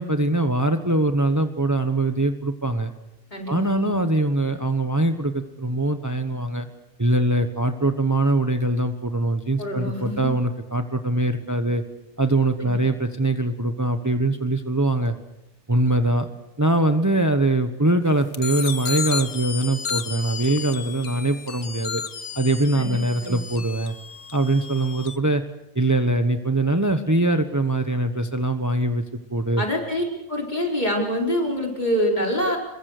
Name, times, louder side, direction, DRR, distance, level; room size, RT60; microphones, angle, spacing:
voice 1, 0.0-2.9 3.5-6.7 7.0-11.8 12.2-15.2 15.7-16.3 16.6-22.0 22.3-23.9 24.3-25.4 25.7-29.0 29.3-29.6, right 2 dB, 15° right, 7 dB, 1.2 m, -22 dB
voice 2, 3.3-3.9 9.6-10.3 12.6-12.8 22.7-23.4 29.6-32.6, equal, 40° left, 0 dB, 5.0 m, -26 dB
sound 1, 18.3-25.2, left 6 dB, 80° left, 1.5 m, -33 dB
26.5 x 23.0 x 6.7 m, 0.89 s
omnidirectional pair, 1.2 m